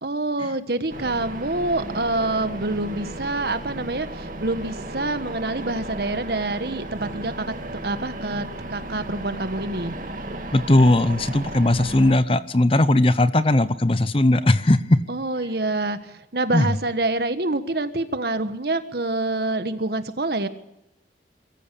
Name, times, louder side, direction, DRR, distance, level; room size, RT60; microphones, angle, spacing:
voice 1, 0.0-7.5 7.8-10.0 15.1-20.5, right 2 dB, 65° right, 10 dB, 1.4 m, -26 dB
sound 1, 0.9-12.2, right 1 dB, 50° right, 2.2 m, -35 dB
voice 2, 10.5-15.0 16.5-16.7, left 1 dB, 30° left, 14 dB, 0.7 m, -18 dB
23.0 x 14.0 x 8.4 m, 0.86 s
head